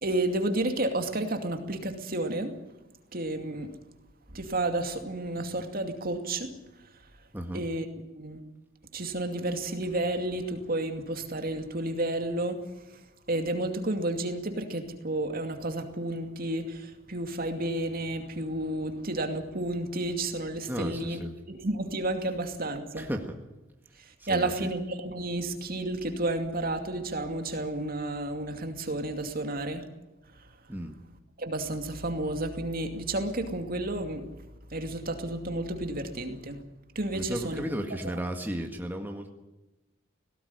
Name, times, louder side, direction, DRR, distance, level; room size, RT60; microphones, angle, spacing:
voice 1, 0.0-2.5 3.1-3.7 4.3-6.5 7.5-7.9 8.1-8.4 8.9-12.6 13.3-21.2 21.5-23.1 24.3-29.8 31.4-34.3 34.7-36.6 36.9-37.6 38.0-38.1, right 2 dB, 45° right, 6 dB, 2.5 m, -31 dB
voice 2, 7.3-7.6 20.7-21.3 23.0-23.3 24.2-24.7 30.7-30.9 37.1-39.3, equal, 10° right, 3 dB, 1.8 m, -34 dB
18.5 x 17.5 x 9.7 m, 1.0 s
head